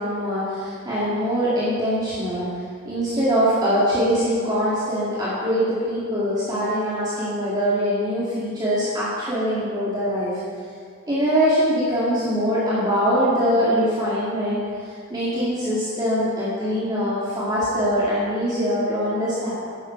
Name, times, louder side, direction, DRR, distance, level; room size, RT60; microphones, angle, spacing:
voice 1, 0.0-10.4 11.1-19.5, equal, 20° right, -10 dB, 2.2 m, -23 dB
11.0 x 10.5 x 4.5 m, 2.1 s
head